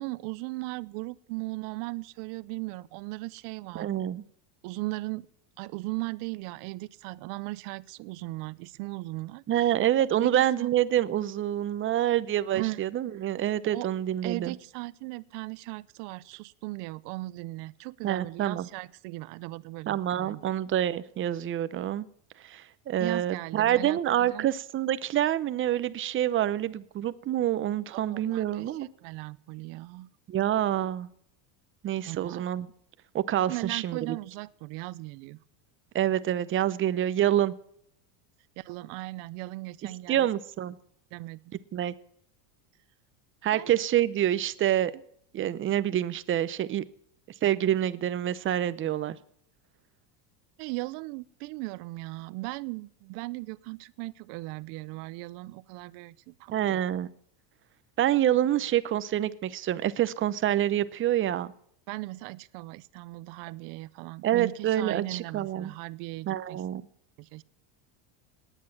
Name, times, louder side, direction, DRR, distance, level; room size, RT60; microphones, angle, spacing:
voice 1, 0.0-3.9 4.6-5.3 5.6-9.7 10.2-10.3 10.6-10.7 12.5-12.8 13.6-13.9 14.2-20.5 23.0-24.5 27.9-30.1 32.1-32.5 33.5-35.4 38.6-40.3 41.1-41.4 43.5-43.7 50.6-56.8 61.9-66.6 67.2-67.4, right 22 dB, 55° right, 18 dB, 0.9 m, -38 dB
voice 2, 3.7-4.2 9.5-14.5 18.0-18.7 19.9-22.1 22.4-28.9 30.3-31.1 31.8-32.7 33.1-34.2 35.9-37.5 40.1-40.8 41.7-41.9 43.4-44.9 45.3-46.8 47.4-49.2 56.5-57.1 58.0-61.5 64.2-65.7 66.3-66.9, right 11 dB, 25° right, 15 dB, 0.8 m, -27 dB
18.5 x 10.0 x 7.3 m, 0.68 s
cardioid pair, 155°, 50 cm